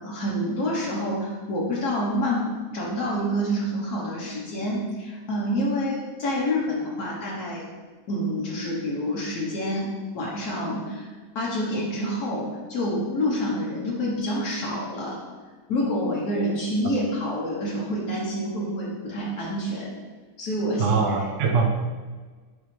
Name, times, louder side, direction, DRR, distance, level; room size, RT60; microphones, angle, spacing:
voice 1, 0.0-7.7 8.1-11.1 11.3-15.2 15.7-20.0 20.4-21.0, equal, 75° left, -4 dB, 1.5 m, -27 dB
voice 2, 20.8-21.7, right 5 dB, 60° right, 3 dB, 0.9 m, -22 dB
9.4 x 3.6 x 3.2 m, 1.4 s
omnidirectional pair, 1.7 m